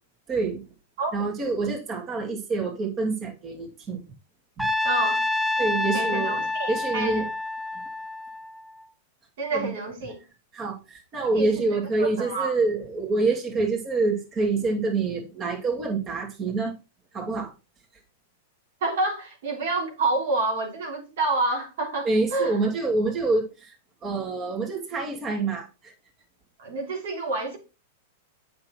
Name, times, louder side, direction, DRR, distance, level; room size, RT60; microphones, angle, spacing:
voice 1, 0.3-0.6 1.1-4.0 4.6-4.7 5.6-6.4 6.7-7.2 9.5-9.7 10.5-16.7 17.1-17.5 22.0-23.7 24.0-25.9, right 3 dB, 30° right, 2.8 m, -26 dB
Trumpet, 4.6-8.8, left 2 dB, ahead, 0.6 m, -27 dB
voice 2, 4.8-5.2 5.9-7.3 9.4-10.2 11.4-11.7 12.0-12.5 18.8-22.6 26.6-27.6, right 2 dB, 70° right, 3.6 m, -28 dB
8.5 x 6.1 x 4.5 m
hypercardioid pair, 130°, 0 cm